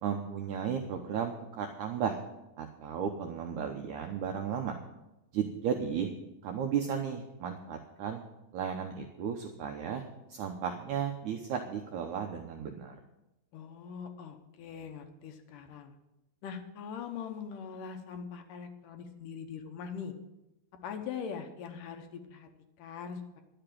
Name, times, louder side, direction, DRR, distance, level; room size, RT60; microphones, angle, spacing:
voice 1, 0.0-2.2 2.6-4.7 5.3-6.1 6.4-8.2 8.5-10.0 10.3-13.0, right 7 dB, 70° right, 4 dB, 2.0 m, -34 dB
voice 2, 13.5-16.0 16.4-20.1 20.8-22.5 22.8-23.4, left 7 dB, 70° left, 6 dB, 2.5 m, -42 dB
11.5 x 6.9 x 9.2 m, 0.94 s
omnidirectional pair, 4.2 m